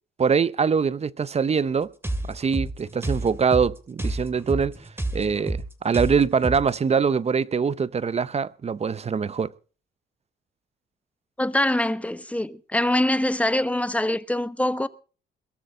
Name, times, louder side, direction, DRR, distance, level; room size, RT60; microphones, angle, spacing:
voice 1, 0.2-1.9 2.3-4.7 5.1-9.5, right 6 dB, 30° right, 0.7 m, -23 dB
sound 1, 2.0-6.8, right 1 dB, 10° right, 2.9 m, -30 dB
voice 2, 11.4-14.9, left 1 dB, 5° left, 1.0 m, -24 dB
22.0 x 13.0 x 3.7 m
cardioid pair, 90°, 20 cm